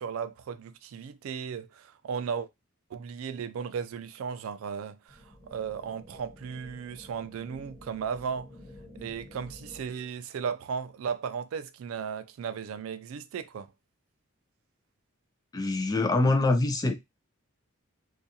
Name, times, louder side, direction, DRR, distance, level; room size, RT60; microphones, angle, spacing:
voice 1, 0.0-2.5 2.9-8.5 9.0-13.7, right 6 dB, 75° right, 0.3 m, -35 dB
sound 1, 5.1-10.1, left 1 dB, ahead, 1.2 m, -50 dB
voice 2, 15.5-16.9, left 2 dB, 20° left, 0.3 m, -24 dB
2.4 x 2.3 x 2.7 m
head